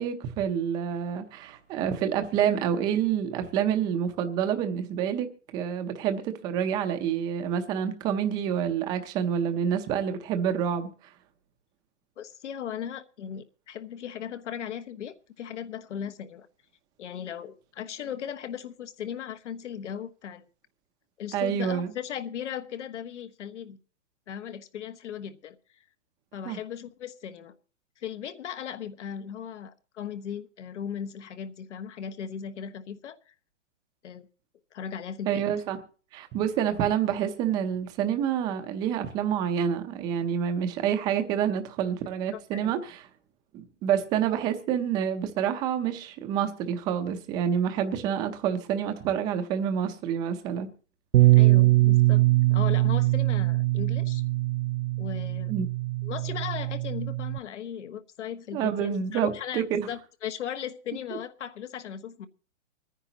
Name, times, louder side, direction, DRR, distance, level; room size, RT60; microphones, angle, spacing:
voice 1, 0.0-10.9 21.3-21.9 26.5-26.6 35.3-35.8 36.1-43.0 43.5-50.7 55.5-55.7 58.5-59.9, right 8 dB, 10° right, 0.6 m, -28 dB
voice 2, 12.2-16.5 17.0-20.4 21.2-23.8 24.3-25.6 26.3-27.5 28.0-33.3 34.0-34.3 34.7-35.4 42.3-42.7 51.3-52.2 52.5-54.2 55.0-55.5 56.0-62.3, left 9 dB, 75° left, 1.3 m, -37 dB
Bass guitar, 51.1-57.4, right 18 dB, 65° right, 0.6 m, -22 dB
25.0 x 10.0 x 2.8 m
hypercardioid pair, 165°, 36 cm